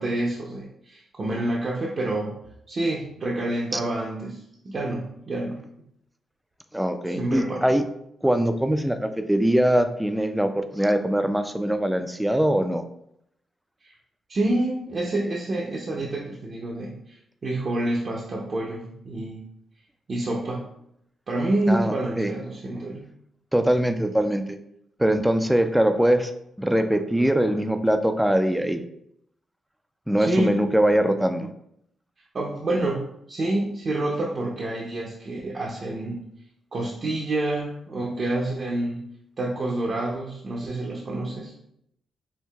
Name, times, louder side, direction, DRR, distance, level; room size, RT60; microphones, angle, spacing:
voice 1, 0.0-2.4 2.7-5.6 7.1-7.7 13.8-13.9 14.3-17.2 17.4-19.4 20.1-20.7 21.3-23.1 30.2-30.5 32.3-33.0 33.3-36.2 36.7-39.0 39.4-41.5, right 1 dB, 50° right, -3 dB, 0.6 m, -28 dB
voice 2, 6.7-7.8 8.2-12.8 21.7-22.3 23.5-24.6 25.0-26.3 26.6-28.8 30.1-31.5, right 1 dB, 5° right, 8 dB, 0.4 m, -22 dB
4.6 x 2.6 x 2.3 m, 0.75 s
cardioid pair, 65°, 0 cm